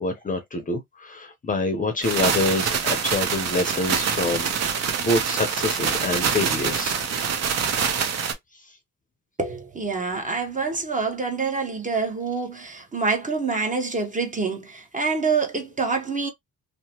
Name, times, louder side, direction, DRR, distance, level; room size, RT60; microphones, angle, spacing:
voice 1, 0.0-7.0, left 2 dB, 25° left, 0.7 m, -26 dB
sound 1, 2.0-8.3, right 6 dB, 55° right, 0.8 m, -25 dB
voice 2, 9.4-16.3, right 4 dB, 25° right, 0.9 m, -26 dB
2.8 x 2.1 x 2.8 m
cardioid pair, 90°, 30 cm